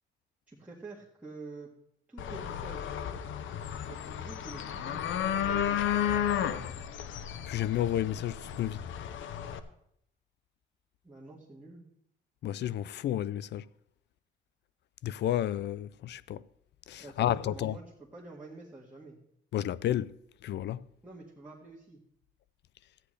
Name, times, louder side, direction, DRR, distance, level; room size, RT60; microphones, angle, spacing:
voice 1, 0.5-1.7 2.1-3.0 3.7-6.1 6.4-6.7 11.0-11.8 17.0-19.2 21.0-22.0, right 3 dB, 5° right, 1.9 m, -48 dB
sound 1, 2.2-9.6, left 9 dB, 75° left, 0.8 m, -33 dB
voice 2, 7.5-8.8 12.4-13.6 15.0-16.4 16.9-17.7 19.5-20.1 20.4-20.8, left 12 dB, 60° left, 0.4 m, -31 dB
14.0 x 9.9 x 3.3 m
cardioid pair, 90°, 20 cm